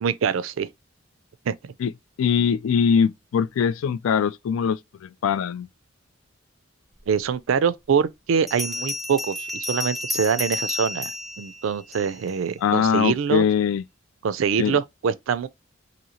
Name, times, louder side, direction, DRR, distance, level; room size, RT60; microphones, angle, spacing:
voice 1, 0.0-0.7 1.5-1.6 7.1-13.5 14.2-15.5, right 6 dB, 75° right, 0.4 m, -24 dB
voice 2, 2.2-5.7 12.6-13.8 14.6-14.8, left 7 dB, 80° left, 0.3 m, -22 dB
Bell, 7.3-7.4 8.5-12.4, left 2 dB, ahead, 0.5 m, -31 dB
2.9 x 2.7 x 2.7 m
head